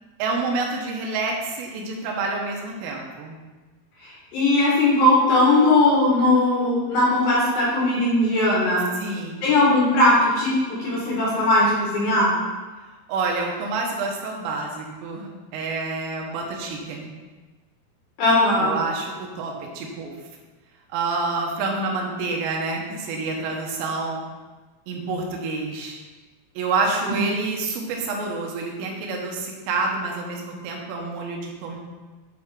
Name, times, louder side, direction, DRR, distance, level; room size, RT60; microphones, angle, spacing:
voice 1, 0.2-3.4 9.0-9.4 12.9-17.1 18.6-20.2 20.9-24.2 24.9-26.0 26.6-31.8, right 3 dB, 80° right, 0 dB, 3.5 m, -28 dB
voice 2, 4.0-8.8 9.4-12.4 18.2-18.7 27.1-27.2, left 1 dB, 60° left, -6 dB, 2.7 m, -19 dB
9.5 x 4.3 x 3.7 m, 1.3 s
omnidirectional pair, 5.8 m